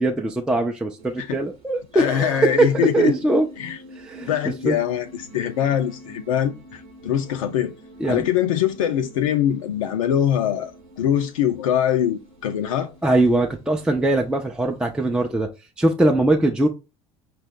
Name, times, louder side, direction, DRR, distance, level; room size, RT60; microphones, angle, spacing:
voice 1, 0.0-3.5 3.9-4.3 4.6-4.8 8.0-8.3 13.0-15.5 15.8-16.7, right 2 dB, 5° right, 0.4 m, -21 dB
sound 1, 1.0-15.4, equal, 85° right, 1.0 m, -45 dB
voice 2, 1.9-3.1 3.6-3.8 4.3-7.7 8.0-12.9, left 10 dB, 70° left, 0.4 m, -23 dB
5.6 x 2.1 x 3.7 m
figure-of-eight pair, 65°, 18 cm